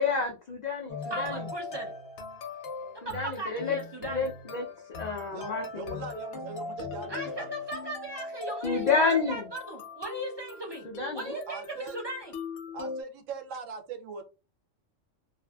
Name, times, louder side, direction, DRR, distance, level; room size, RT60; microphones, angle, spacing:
voice 1, 0.0-1.4 3.0-3.8 4.1-4.6 5.0-6.0 8.6-9.4 10.8-11.4, left 4 dB, 80° left, 0 dB, 0.3 m, -29 dB
sound 1, 0.9-13.0, left 3 dB, 60° left, 0.8 m, -39 dB
voice 2, 1.1-1.9 2.9-4.3 7.1-12.3, right 1 dB, 40° right, -1 dB, 0.3 m, -38 dB
voice 3, 5.3-7.5 11.5-12.0 12.7-14.2, right 5 dB, 85° right, 5 dB, 1.0 m, -41 dB
2.5 x 2.4 x 2.2 m, 0.30 s
omnidirectional pair, 1.3 m